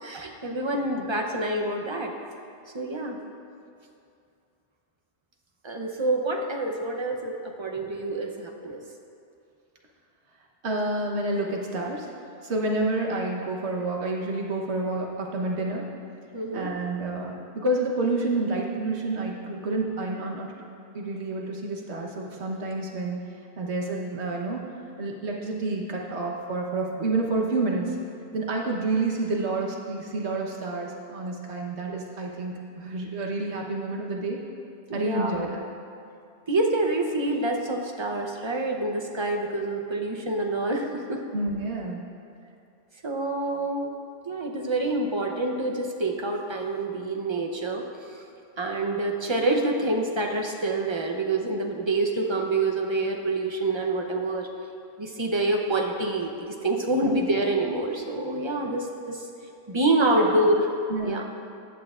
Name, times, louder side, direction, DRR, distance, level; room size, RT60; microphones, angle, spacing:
voice 1, 0.0-2.1 2.7-3.2 5.6-8.8 16.3-16.7 34.9-35.5 36.5-41.2 43.0-43.9 44.2-48.2 48.6-54.5 55.0-59.3 59.7-60.7 61.0-61.3, right 2 dB, 30° right, 2 dB, 0.8 m, -27 dB
voice 2, 10.6-12.1 12.4-15.8 16.5-20.6 20.9-23.2 23.6-24.6 25.0-28.0 28.3-34.4 34.9-35.5 41.3-42.0 57.0-57.1 60.2-60.3 60.9-61.3, right 2 dB, 90° right, -1 dB, 1.4 m, -29 dB
14.5 x 8.7 x 2.5 m, 2.5 s
omnidirectional pair, 1.1 m